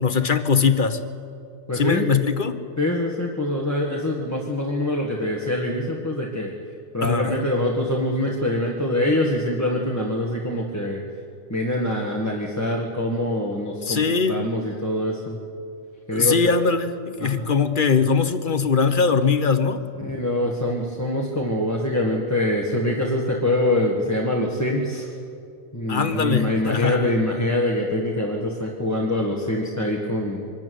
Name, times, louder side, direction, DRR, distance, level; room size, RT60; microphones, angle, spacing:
voice 1, 0.0-1.0 1.7-2.6 7.0-7.4 13.8-14.5 16.1-19.8 25.9-27.1, left 5 dB, 45° left, 9 dB, 1.1 m, -21 dB
voice 2, 1.7-2.0 2.8-6.5 6.9-11.0 11.5-15.4 16.1-16.4 17.2-17.4 20.0-25.1 25.7-30.4, left 1 dB, 15° left, -2 dB, 1.6 m, -24 dB
24.0 x 13.0 x 9.4 m, 2.5 s
omnidirectional pair, 1.3 m